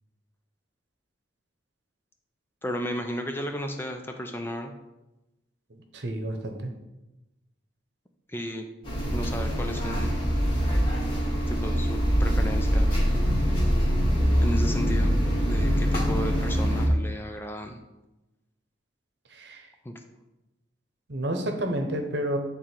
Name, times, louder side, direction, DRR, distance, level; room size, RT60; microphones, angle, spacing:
voice 1, 2.6-4.7 8.3-8.7 9.1-10.1 11.5-13.0 14.4-15.1 15.4-17.8 19.8-19.9, equal, 10° left, 4 dB, 0.5 m, -34 dB
voice 2, 5.7-6.7 19.3-19.7 21.1-22.4, right 1 dB, 65° right, 4 dB, 0.9 m, -30 dB
sound 1, 8.8-16.9, equal, 30° left, 1.7 m, -24 dB
8.4 x 3.7 x 4.4 m, 0.99 s
head